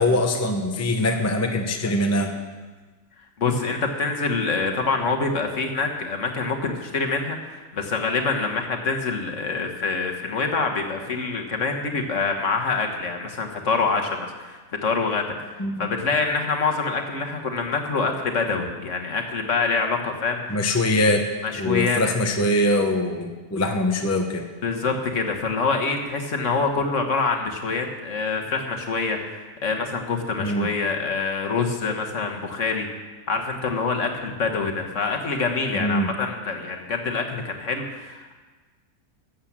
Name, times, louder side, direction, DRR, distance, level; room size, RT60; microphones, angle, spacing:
voice 1, 0.0-2.3 15.6-15.8 20.5-21.2 21.6-24.4 30.4-30.7 35.7-36.1, left 1 dB, 15° left, 4 dB, 0.6 m, -22 dB
voice 2, 3.4-20.6 21.4-22.0 24.6-32.9 33.3-38.3, left 4 dB, 50° left, 3 dB, 1.6 m, -26 dB
13.0 x 7.7 x 7.4 m, 1.3 s
omnidirectional pair, 1.8 m